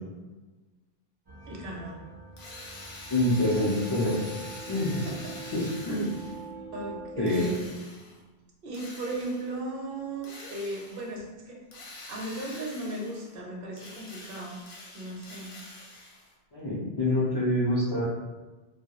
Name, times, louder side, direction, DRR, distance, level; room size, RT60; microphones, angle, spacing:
sound 1, 1.3-7.7, right 3 dB, 40° right, 0.3 m, -44 dB
voice 1, 1.5-2.0 5.0-5.3 5.9-6.0 6.7-7.6 8.6-11.6 12.1-14.6 14.9-15.5, right 1 dB, 70° right, -1 dB, 0.7 m, -36 dB
Drill, 2.4-6.5 7.3-8.2 8.7-9.6 10.2-11.1 11.7-13.3 13.7-16.3, left 2 dB, 65° left, 0.7 m, -46 dB
voice 2, 3.1-4.2 4.7-5.0 5.5-6.1 7.2-7.4 16.5-18.1, left 1 dB, 45° left, -8 dB, 0.3 m, -26 dB
2.2 x 2.0 x 2.8 m, 1.2 s
omnidirectional pair, 1.0 m